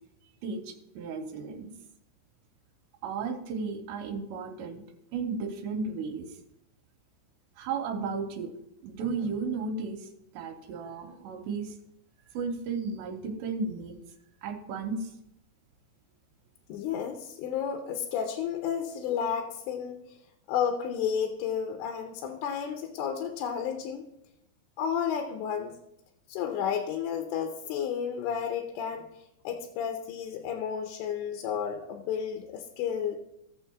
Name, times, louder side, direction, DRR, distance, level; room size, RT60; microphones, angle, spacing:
voice 1, 0.4-1.7 3.0-4.8 5.1-6.3 7.6-8.5 8.8-10.1 10.3-11.7 12.3-14.0 14.4-15.1, right 4 dB, 75° right, 4 dB, 2.8 m, -34 dB
voice 2, 16.7-20.2 20.5-24.0 24.8-25.8 26.3-33.2, left 8 dB, 80° left, 4 dB, 2.8 m, -32 dB
17.5 x 7.4 x 2.3 m, 0.83 s
omnidirectional pair, 5.3 m